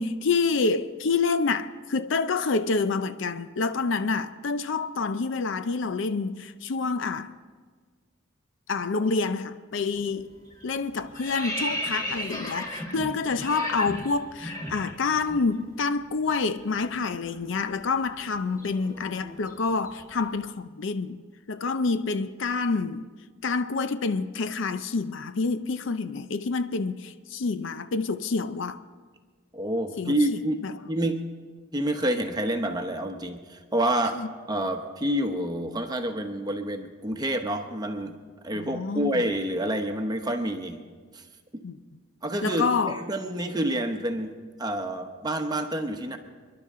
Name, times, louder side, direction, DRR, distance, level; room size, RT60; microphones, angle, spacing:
voice 1, 0.0-7.3 8.7-10.3 10.6-21.2 21.5-23.1 23.4-28.8 30.0-30.7 34.1-34.3 38.5-39.2 41.6-41.8 42.4-43.0, left 4 dB, 60° left, 0.5 m, -28 dB
sound 1, 9.9-10.2 10.5-15.5 15.7-15.9 16.2-20.3, equal, 15° left, 1.7 m, -36 dB
voice 2, 29.5-30.6 30.9-31.3 31.7-34.2 34.5-38.2 38.4-40.8 41.1-41.2 41.5-41.6 42.2-46.2, right 1 dB, 20° right, 0.9 m, -28 dB
27.5 x 11.5 x 3.7 m
head